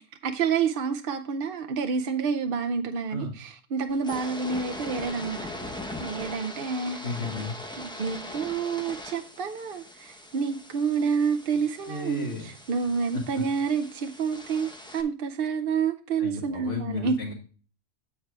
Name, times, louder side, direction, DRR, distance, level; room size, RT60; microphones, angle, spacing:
voice 1, 0.0-7.0 7.8-17.2, right 5 dB, 55° right, 0.7 m, -29 dB
sound 1, 3.9-15.0, left 1 dB, 5° left, 0.8 m, -41 dB
voice 2, 7.0-7.5 11.9-12.5 13.1-13.4 16.2-17.3, left 2 dB, 65° left, 1.9 m, -33 dB
8.9 x 4.6 x 4.6 m
omnidirectional pair, 1.3 m